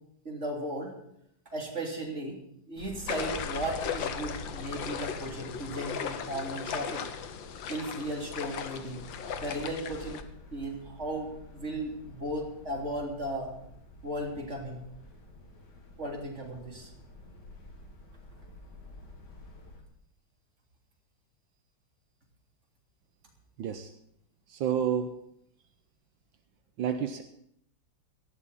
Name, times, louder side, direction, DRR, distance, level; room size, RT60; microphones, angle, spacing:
voice 1, 0.3-0.9 1.5-2.4 2.7-7.1 7.7-9.0 9.4-10.2 10.5-13.5 14.0-14.8 16.0-16.9, right 1 dB, 35° right, -1 dB, 3.6 m, -35 dB
sound 1, 2.8-19.8, left 1 dB, 60° left, 2.9 m, -48 dB
sound 2, 3.1-10.2, left 8 dB, 75° left, 1.7 m, -37 dB
voice 2, 23.6-23.9 24.5-25.1 26.8-27.2, right 8 dB, 80° right, 7 dB, 1.6 m, -29 dB
18.0 x 13.5 x 4.1 m, 0.73 s
omnidirectional pair, 2.1 m